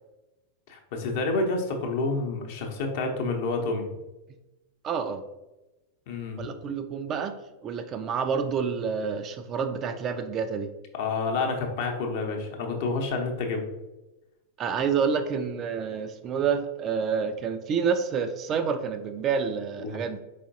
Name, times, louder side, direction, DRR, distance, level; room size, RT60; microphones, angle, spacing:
voice 1, 0.7-3.9 6.1-6.5 10.9-13.6 19.8-20.0, left 3 dB, 50° left, 3 dB, 0.7 m, -29 dB
voice 2, 4.8-5.2 6.4-7.3 7.6-10.7 14.6-20.2, right 6 dB, 30° right, 8 dB, 0.3 m, -28 dB
4.4 x 3.4 x 2.7 m, 1.0 s
figure-of-eight pair, 90°, 0 cm